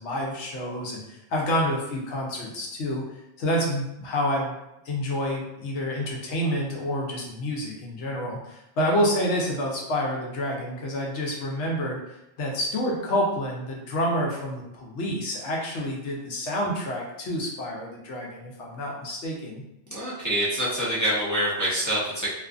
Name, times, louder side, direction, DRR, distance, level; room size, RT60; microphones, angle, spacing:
voice 1, 0.0-3.0 3.4-4.6 4.8-12.0 12.4-19.6, equal, 75° left, -2 dB, 1.0 m, -28 dB
voice 2, 19.9-22.3, equal, 20° left, -8 dB, 0.5 m, -26 dB
2.5 x 2.4 x 2.3 m, 0.87 s
omnidirectional pair, 1.2 m